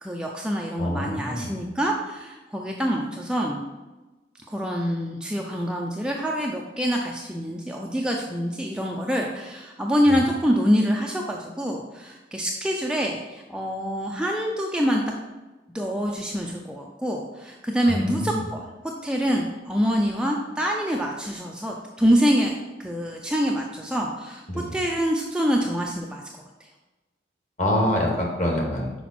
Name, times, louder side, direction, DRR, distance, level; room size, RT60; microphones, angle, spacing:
voice 1, 0.0-3.6 4.5-15.0 15.7-22.5 22.8-24.4 24.7-26.2 26.6-26.7, equal, 5° right, 0 dB, 0.4 m, -25 dB
voice 2, 0.8-1.6 10.1-10.2 17.9-18.4 24.5-24.8 27.6-28.9, left 1 dB, 40° left, 0 dB, 1.3 m, -26 dB
6.0 x 5.0 x 4.2 m, 1.1 s
head